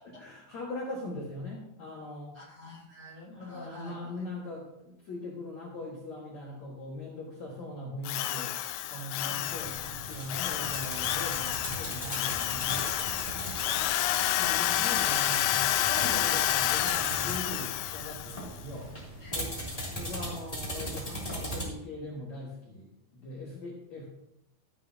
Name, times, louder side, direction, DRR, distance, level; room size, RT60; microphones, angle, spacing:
voice 1, 0.2-2.4 3.3-8.6 8.9-13.7 14.4-18.9 19.3-19.5 19.9-24.1, left 2 dB, 50° left, -5 dB, 2.4 m, -41 dB
voice 2, 2.3-4.3 9.2-9.5 10.3-10.8 14.2-14.9 19.2-19.9, left 2 dB, 25° right, -4 dB, 2.6 m, -48 dB
Drill, 8.1-18.5, left 13 dB, 85° left, 2.9 m, -29 dB
sound 1, 9.4-21.6, equal, 10° left, 2.3 m, -39 dB
14.0 x 9.5 x 2.9 m, 0.84 s
omnidirectional pair, 5.5 m